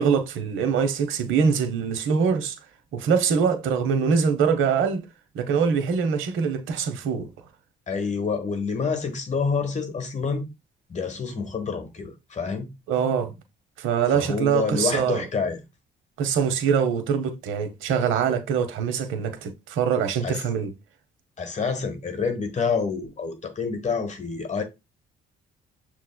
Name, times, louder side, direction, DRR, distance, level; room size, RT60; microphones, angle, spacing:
voice 1, 0.0-2.6 2.9-5.1 5.3-7.3 12.9-13.3 13.8-15.3 16.2-20.7, right 6 dB, 85° right, 0.8 m, -23 dB
voice 2, 7.9-10.5 10.9-12.7 14.1-15.6 20.2-20.4 21.4-24.6, left 5 dB, 35° left, 1.2 m, -27 dB
6.9 x 3.0 x 2.2 m
cardioid pair, 90°, 20 cm